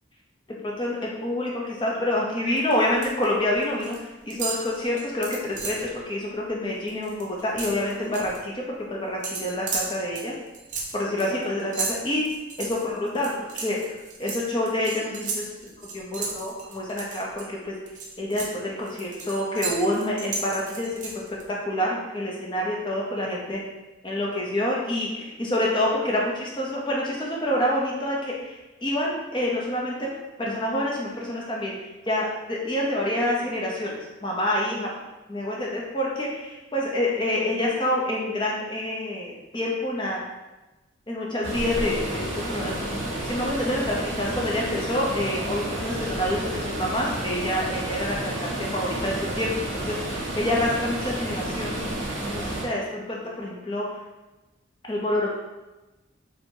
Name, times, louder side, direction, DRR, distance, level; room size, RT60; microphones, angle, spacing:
voice 1, 0.6-4.0 4.2-8.6 8.9-10.3 10.9-12.2 12.6-15.5 15.9-17.7 18.2-21.2 21.7-23.6 24.0-30.1 30.4-31.8 32.1-34.9 35.3-40.2 41.1-51.8 52.3-53.9 54.9-55.3, left 1 dB, 25° left, -3 dB, 0.7 m, -27 dB
sound 1, 2.6-3.2 3.5-4.0 4.3-5.9 6.3-6.5 6.8-8.4 9.2-17.4 17.9-21.4, right 4 dB, 40° right, 0.6 m, -34 dB
sound 2, 41.4-52.6, right 1 dB, 70° right, 1.4 m, -31 dB
4.4 x 2.8 x 2.7 m, 1.1 s
head